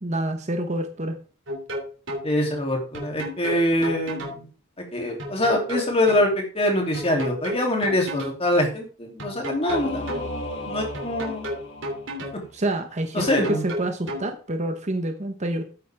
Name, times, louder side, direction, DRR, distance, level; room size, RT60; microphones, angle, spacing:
voice 1, 0.0-1.2 12.5-15.6, right 1 dB, 30° right, 7 dB, 1.1 m, -27 dB
sound 1, 1.5-2.3 2.9-4.4 5.2-6.3 6.9-8.4 9.2-10.3 10.9-12.4 13.2-14.3, equal, 60° right, 3.0 m, -32 dB
voice 2, 2.2-4.5 4.9-11.5 13.1-13.6, left 1 dB, 25° left, 1 dB, 3.1 m, -24 dB
Singing / Musical instrument, 9.7-12.6, left 1 dB, 55° left, 2.3 m, -35 dB
12.0 x 9.3 x 3.6 m, 0.38 s
head